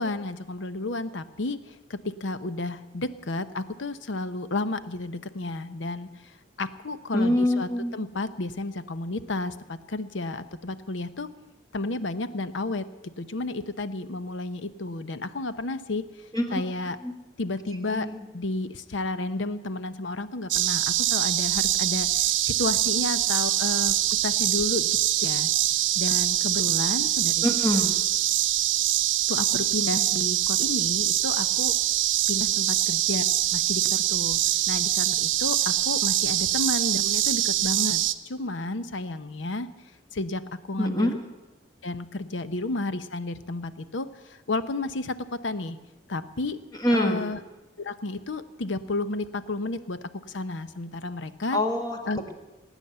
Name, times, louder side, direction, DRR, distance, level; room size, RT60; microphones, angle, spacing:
voice 1, 0.0-11.3 11.7-16.1 16.5-17.0 17.4-18.1 18.3-25.5 25.9-27.4 29.3-31.8 32.3-33.2 33.5-34.4 34.7-39.7 40.1-41.1 41.8-45.8 46.1-46.6 46.9-47.4 47.8-50.0 50.3-51.6 52.1-52.2, left 2 dB, 80° left, 12 dB, 0.8 m, -32 dB
voice 2, 7.1-8.0 16.3-16.6 17.0-17.1 17.7-18.2 27.4-27.9 40.8-41.2 46.7-47.2 51.5-52.0 52.3-52.4, left 1 dB, 20° left, 4 dB, 1.6 m, -25 dB
sound 1, 20.5-38.1, right 13 dB, 85° right, 0.7 m, -24 dB
19.5 x 9.1 x 8.0 m, 1.1 s
head